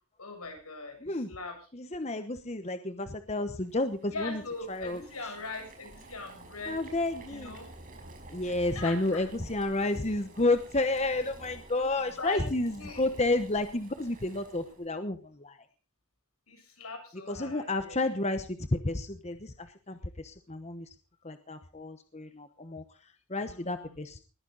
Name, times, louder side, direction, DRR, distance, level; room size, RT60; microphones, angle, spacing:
voice 1, 0.2-1.6 4.1-6.8 7.3-7.7 8.4-9.2 11.8-11.9 12.2-12.5 12.8-13.0 16.5-18.0 23.5-24.0, left 3 dB, 85° left, 4 dB, 7.6 m, -41 dB
voice 2, 1.7-4.4 4.7-5.3 6.7-7.6 8.3-15.7 17.3-20.9 21.2-24.2, left 2 dB, 30° left, 9 dB, 1.0 m, -31 dB
Boiling, 3.6-14.9, right 2 dB, 35° right, 5.0 m, -51 dB
20.0 x 14.0 x 4.0 m, 0.35 s
head